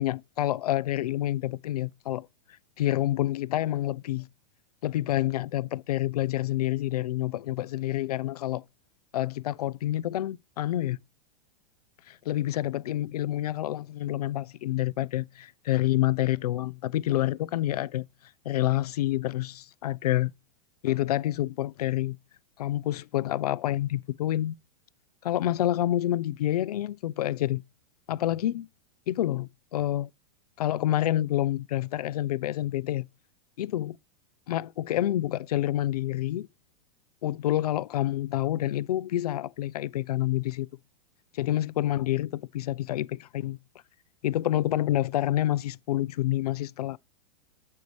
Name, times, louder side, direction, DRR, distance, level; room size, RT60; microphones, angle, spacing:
voice 1, 0.0-2.3 2.8-4.3 4.8-8.6 9.1-11.0 12.1-18.1 18.5-20.3 20.8-22.2 22.6-24.6 25.2-27.6 28.1-28.7 29.1-30.1 30.6-33.1 33.6-34.0 34.5-36.5 37.2-40.7 41.3-43.6 44.2-47.0, left 14 dB, 85° left, 0.5 m, -28 dB
8.4 x 5.3 x 3.1 m
hypercardioid pair, 135°, 19 cm